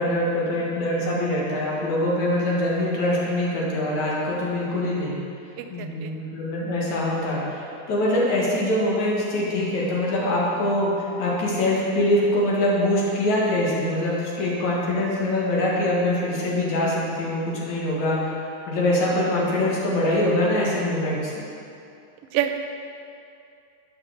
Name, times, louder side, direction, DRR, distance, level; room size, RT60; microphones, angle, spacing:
voice 1, 0.0-5.1 5.7-18.3 18.7-21.3, left 1 dB, 65° left, -5 dB, 3.0 m, -23 dB
voice 2, 5.6-6.1 22.3-22.6, right 11 dB, 80° right, 6 dB, 1.4 m, -27 dB
11.5 x 5.7 x 6.7 m, 2.5 s
omnidirectional pair, 3.6 m